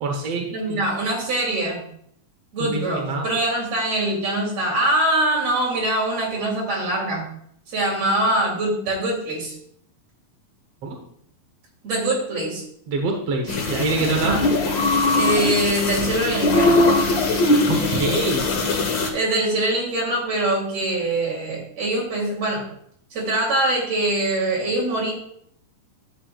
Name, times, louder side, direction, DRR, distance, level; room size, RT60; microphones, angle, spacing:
voice 1, 0.0-0.8 2.6-3.3 10.8-11.0 12.9-14.4 17.7-18.5, right 3 dB, 65° right, 1 dB, 1.6 m, -25 dB
voice 2, 0.5-1.8 2.5-7.3 7.7-9.5 11.8-12.6 14.2-14.5 15.1-17.1 19.1-22.6 23.1-25.1, right 1 dB, 45° right, -3 dB, 4.0 m, -23 dB
sound 1, 13.5-19.1, left 2 dB, 80° left, 1.0 m, -20 dB
11.5 x 8.7 x 2.4 m, 0.68 s
omnidirectional pair, 4.2 m